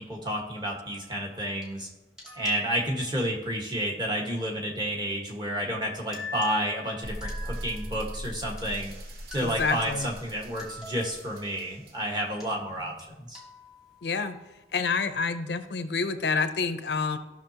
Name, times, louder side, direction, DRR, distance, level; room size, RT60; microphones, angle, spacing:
voice 1, 0.0-1.9 2.3-8.9 9.3-13.4, equal, 25° right, -1 dB, 1.4 m, -30 dB
sound 1, 0.6-1.7 2.2-3.1 5.8-5.9 6.1-8.2 8.6-8.7 9.3-11.7 12.4-12.5 13.0-13.1 13.3-14.4, left 2 dB, 5° right, 1.2 m, -44 dB
sound 2, 7.0-13.1, equal, 60° right, 1.1 m, -40 dB
voice 2, 9.4-10.1 14.0-14.4 14.7-17.2, left 4 dB, 70° left, 10 dB, 0.6 m, -28 dB
14.5 x 5.9 x 2.9 m, 1.0 s
head